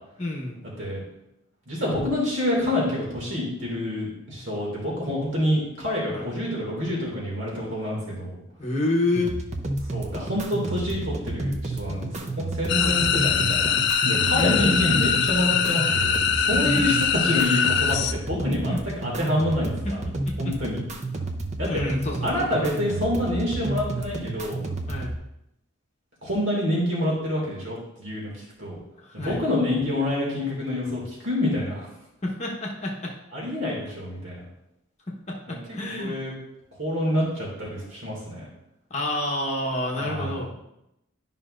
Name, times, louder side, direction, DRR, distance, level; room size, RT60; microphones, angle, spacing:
voice 1, 0.2-0.6 6.1-6.3 8.6-9.3 12.8-13.1 14.3-14.9 16.5-16.8 18.7-18.9 19.8-20.1 20.4-20.5 21.7-22.5 24.9-25.1 29.0-29.4 32.2-33.1 35.3-36.2 38.9-40.5, left 1 dB, 35° left, -1 dB, 1.1 m, -28 dB
voice 2, 1.7-8.3 9.9-13.7 14.0-18.7 19.0-20.0 20.4-20.8 21.6-21.7 22.2-24.6 26.2-28.3 28.6-28.8 29.2-31.9 33.3-34.4 35.5-35.6 36.0-36.3 36.8-38.4 40.0-40.4, left 1 dB, 60° right, -4 dB, 2.4 m, -27 dB
sound 1, 9.1-25.2, right 2 dB, 35° right, 0.7 m, -31 dB
sound 2, 12.7-18.1, left 7 dB, 50° left, 0.4 m, -23 dB
11.5 x 5.4 x 2.5 m, 0.84 s
head